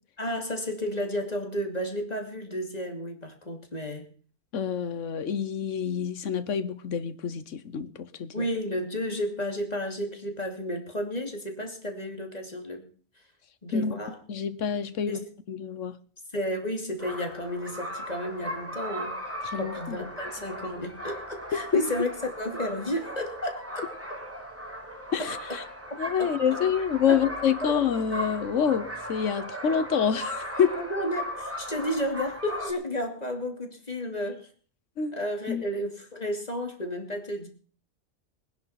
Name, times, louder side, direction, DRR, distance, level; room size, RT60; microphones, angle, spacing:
voice 1, 0.2-4.1 8.3-12.9 13.6-14.2 15.1-15.3 16.3-19.2 19.6-22.1 22.4-23.8 26.2-26.3 27.1-27.3 27.6-27.7 30.8-34.5 35.1-37.5, equal, 35° left, 2.8 m, -32 dB
voice 2, 4.5-8.5 13.7-13.9 14.3-16.0 19.4-20.1 21.5-21.8 25.1-25.6 26.0-30.8 35.0-35.2 35.5-35.6, left 7 dB, 80° left, 1.4 m, -27 dB
sound 1, 17.0-32.7, equal, 10° right, 3.2 m, -37 dB
20.5 x 10.5 x 5.8 m
omnidirectional pair, 1.3 m